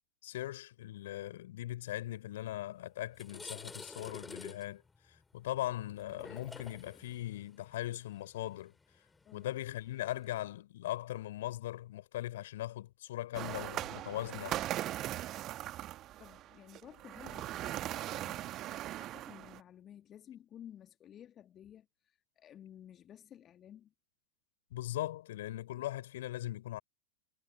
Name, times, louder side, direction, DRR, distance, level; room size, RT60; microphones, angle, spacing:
voice 1, 0.2-4.8 5.3-8.7 9.3-14.6 24.7-26.8, left 14 dB, 55° left, 3.4 m, -39 dB
sound 1, 2.5-2.7 3.0-10.3, left 4 dB, 10° left, 3.5 m, -50 dB
sound 2, 13.3-19.6, right 14 dB, 35° right, 1.8 m, -39 dB
voice 2, 16.2-23.9, left 10 dB, 30° left, 1.9 m, -54 dB
figure-of-eight pair, 90°, 0 cm